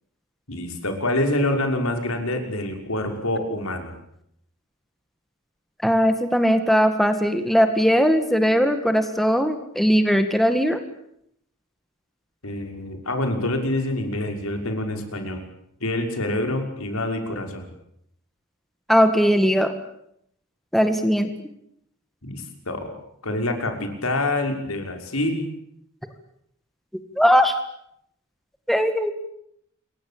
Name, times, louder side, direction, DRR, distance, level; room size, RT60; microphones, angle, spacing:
voice 1, 0.5-3.9 12.4-15.5 15.8-17.7 22.2-22.9 23.2-25.5, left 1 dB, 80° left, 5 dB, 5.9 m, -26 dB
voice 2, 5.8-10.8 18.9-19.7 20.7-21.3 27.2-27.5 28.7-29.1, equal, ahead, 8 dB, 1.9 m, -19 dB
28.0 x 23.0 x 8.8 m, 0.74 s
head